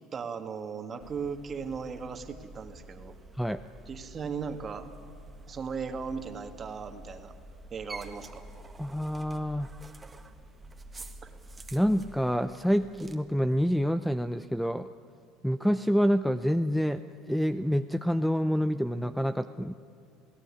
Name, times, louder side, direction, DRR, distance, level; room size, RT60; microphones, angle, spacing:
voice 1, 0.1-3.1 3.9-4.9 5.5-7.4 7.7-8.4 11.2-11.3, right 5 dB, 30° right, 7 dB, 2.0 m, -37 dB
sound 1, 1.0-13.2, right 1 dB, 15° right, 1.7 m, -48 dB
voice 2, 8.8-9.7 11.7-14.9 15.4-17.0 17.3-19.7, equal, ahead, 11 dB, 0.6 m, -27 dB
27.5 x 17.5 x 9.9 m, 2.5 s
supercardioid pair, 125°, 0 cm